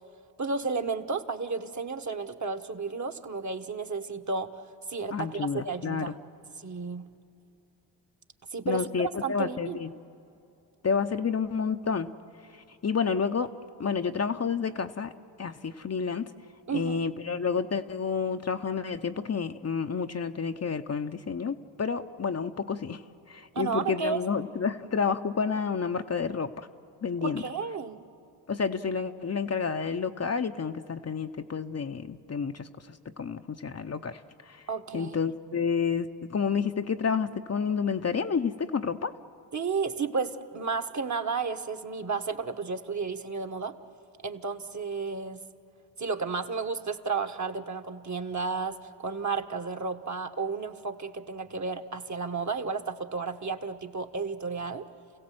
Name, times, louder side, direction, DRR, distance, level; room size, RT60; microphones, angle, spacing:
voice 1, 0.4-4.5 4.9-6.1 6.6-7.1 8.5-9.8 16.7-17.0 23.5-24.2 27.2-28.0 34.7-35.1 39.5-43.8 44.2-45.4 46.0-54.9, right 4 dB, 40° right, 6 dB, 1.5 m, -32 dB
voice 2, 5.1-6.1 8.6-9.9 10.8-12.1 12.8-13.5 13.8-15.1 15.4-16.3 16.7-23.0 23.3-26.7 27.0-27.4 28.5-34.6 34.9-39.1, left 6 dB, 35° left, 7 dB, 0.9 m, -30 dB
29.5 x 16.0 x 7.8 m, 2.8 s
supercardioid pair, 50°, 46 cm